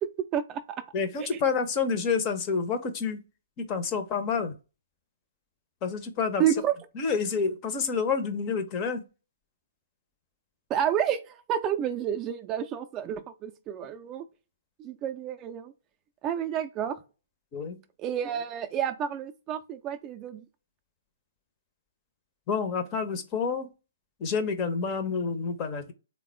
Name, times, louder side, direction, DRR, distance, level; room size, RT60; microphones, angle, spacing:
voice 1, 0.9-3.2 3.6-4.5 5.8-6.4 6.9-9.1 17.5-17.8 22.5-23.7 24.2-25.9, left 5 dB, 30° left, 0.6 m, -28 dB
voice 2, 6.4-6.7 10.7-14.2 14.8-15.7 16.2-17.0 18.0-20.4, right 10 dB, 25° right, 0.4 m, -30 dB
3.5 x 2.1 x 3.3 m
figure-of-eight pair, 125°, 0 cm